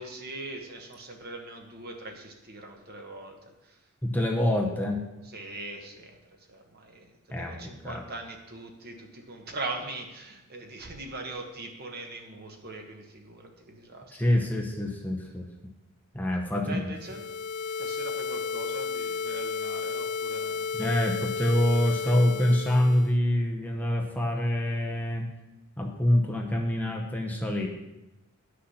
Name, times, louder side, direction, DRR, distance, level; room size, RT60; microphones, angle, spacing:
voice 1, 0.0-3.8 5.2-14.5 16.5-17.3 17.8-20.7, right 2 dB, 45° right, 3 dB, 1.4 m, -41 dB
voice 2, 4.0-5.0 7.3-7.6 7.8-8.0 14.1-15.5 16.1-16.8 20.7-25.3 25.8-27.7, left 1 dB, 10° left, 0 dB, 0.8 m, -26 dB
sound 1, 17.0-23.1, left 5 dB, 70° left, 0.4 m, -33 dB
10.0 x 6.5 x 5.7 m, 0.99 s
head